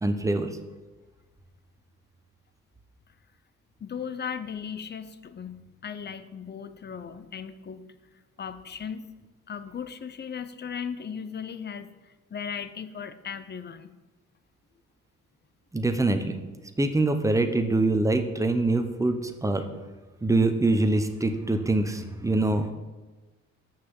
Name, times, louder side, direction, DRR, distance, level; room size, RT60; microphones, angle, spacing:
voice 1, 0.0-0.5 15.7-16.4 16.8-19.6 20.2-22.7, right 2 dB, 10° right, 8 dB, 0.8 m, -24 dB
voice 2, 3.8-7.8 8.4-9.1 9.5-13.9, left 7 dB, 35° left, 12 dB, 0.6 m, -37 dB
6.5 x 5.8 x 7.0 m, 1.2 s
cardioid pair, 90°, 30 cm